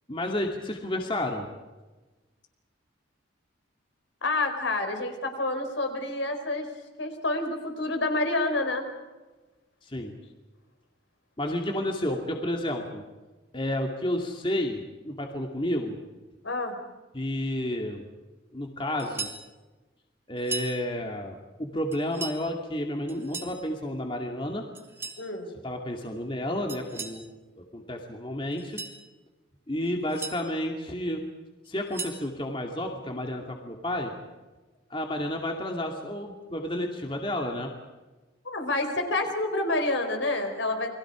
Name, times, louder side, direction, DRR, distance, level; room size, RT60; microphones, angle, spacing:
voice 1, 0.1-1.5 9.8-10.2 11.4-13.0 13.5-16.0 17.1-18.0 18.5-19.3 20.3-24.7 25.6-27.2 27.6-28.8 29.7-31.2 31.7-34.1 34.9-37.7, left 1 dB, 25° left, 2 dB, 2.4 m, -31 dB
voice 2, 4.2-6.7 7.0-8.8 12.1-12.2 16.4-16.7 25.2-25.5 38.4-40.9, left 2 dB, 70° left, 5 dB, 4.8 m, -28 dB
sound 1, 19.0-19.4 20.4-20.8 21.9-22.4 23.1-23.6 24.7-25.2 26.7-27.2 28.5-29.0 29.8-30.4 31.6-32.2, right 3 dB, 15° right, 2.4 m, -37 dB
30.0 x 23.0 x 5.0 m, 1.2 s
head